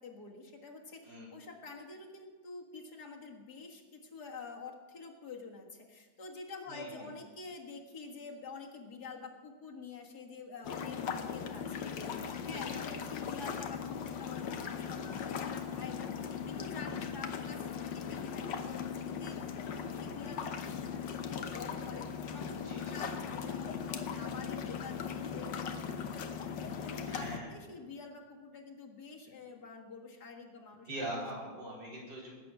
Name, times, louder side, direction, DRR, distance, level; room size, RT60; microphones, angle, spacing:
voice 1, 0.0-16.1 16.5-22.1 22.3-30.9 31.2-31.3, left 4 dB, 65° left, 1 dB, 2.3 m, -48 dB
voice 2, 6.7-7.1 12.6-13.0 16.8-16.9 22.6-23.0 27.1-27.5 30.9-32.3, right 1 dB, 85° right, -4 dB, 5.0 m, -42 dB
sound 1, 10.6-27.4, left 7 dB, 90° left, 1.7 m, -39 dB
19.5 x 8.9 x 6.2 m, 1.4 s
omnidirectional pair, 1.9 m